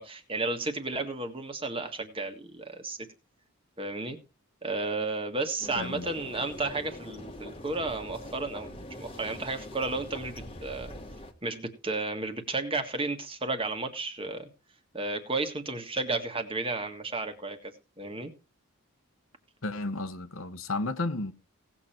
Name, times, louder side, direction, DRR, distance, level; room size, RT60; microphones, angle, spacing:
voice 1, 0.0-3.1 3.8-4.2 4.6-10.9 11.4-14.5 14.9-18.3, right 3 dB, 25° right, 1.7 m, -33 dB
sound 1, 5.6-11.3, left 1 dB, 25° left, 1.5 m, -43 dB
voice 2, 5.7-6.1 19.6-21.3, left 2 dB, 70° left, 1.2 m, -33 dB
17.5 x 7.1 x 4.5 m
head